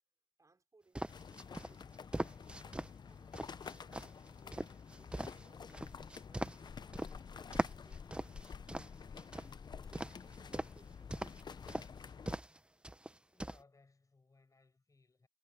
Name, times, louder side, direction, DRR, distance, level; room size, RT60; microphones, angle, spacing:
voice 1, 0.4-2.1 2.6-6.5 6.8-9.0 9.7-11.5, right 3 dB, 45° right, 5.4 m, -71 dB
sound 1, 0.9-2.9 3.3-7.1 7.5-9.5 9.9-10.8 11.1-11.4 11.7-11.9 12.3-12.6 12.8-13.6, right 1 dB, 15° right, 0.7 m, -40 dB
sound 2, 1.1-12.4, left 6 dB, 70° left, 0.6 m, -50 dB
voice 2, 13.3-15.3, left 3 dB, 45° left, 6.3 m, -67 dB
cardioid pair, 55°, 8 cm